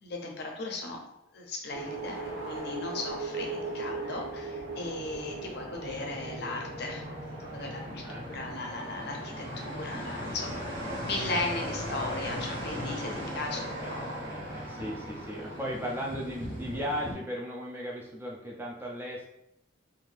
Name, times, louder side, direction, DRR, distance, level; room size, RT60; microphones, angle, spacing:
voice 1, 0.0-1.0 1.3-2.2 2.4-7.1 7.5-14.2, left 3 dB, 55° left, 1 dB, 0.6 m, -37 dB
sound 1, 1.7-13.9, right 2 dB, 85° right, 1.2 m, -41 dB
sound 2, 3.9-17.1, equal, 60° right, 1.2 m, -39 dB
voice 2, 8.0-8.5 9.1-9.6 12.3-13.3 13.8-19.3, equal, 10° right, -3 dB, 0.4 m, -38 dB
2.7 x 2.5 x 3.2 m, 0.79 s
head